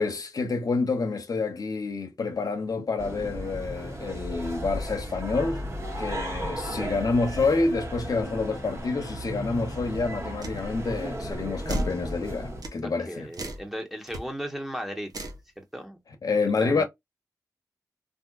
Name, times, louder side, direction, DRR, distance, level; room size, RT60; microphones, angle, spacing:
voice 1, 0.0-5.6 6.0-13.3 16.2-16.8, left 4 dB, 70° left, 0.7 m, -28 dB
sound 1, 3.0-12.6, equal, 45° right, 1.2 m, -35 dB
sound 2, 10.4-10.6 11.7-12.0 12.6-12.8 13.3-13.7 14.1-14.2 15.1-15.4, right 1 dB, 70° right, 0.8 m, -32 dB
voice 2, 13.1-15.3 15.6-16.0 16.6-16.8, equal, 5° right, 1.1 m, -36 dB
3.6 x 2.5 x 2.3 m
cardioid pair, 50°, 7 cm